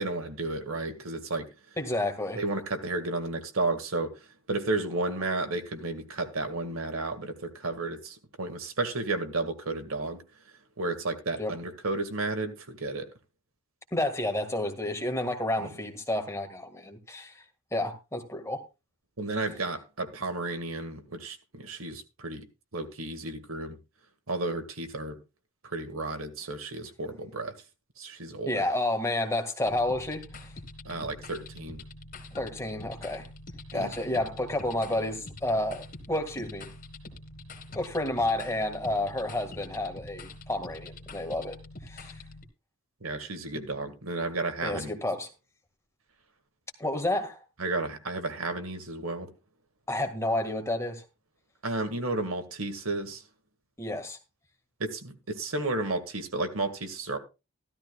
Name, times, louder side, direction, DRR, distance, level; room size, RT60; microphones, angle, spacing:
voice 1, 0.0-1.5 2.3-4.1 4.5-10.2 10.8-13.1 15.6-15.7 19.2-22.4 22.7-23.8 24.3-25.2 25.6-27.5 28.0-28.6 30.9-31.8 33.7-34.2 43.0-44.9 47.6-49.3 51.6-53.2 54.8-57.2, right 2 dB, 75° right, 1.9 m, -32 dB
voice 2, 1.8-2.4 11.4-11.5 13.9-17.4 17.7-18.6 28.5-30.2 32.3-33.3 33.7-36.7 37.7-41.6 41.8-42.1 44.6-45.3 46.8-47.4 49.9-51.0 53.8-54.2, left 1 dB, 15° left, 1.9 m, -30 dB
sound 1, 29.6-42.4, left 2 dB, 40° left, 2.6 m, -45 dB
15.0 x 13.0 x 2.4 m
head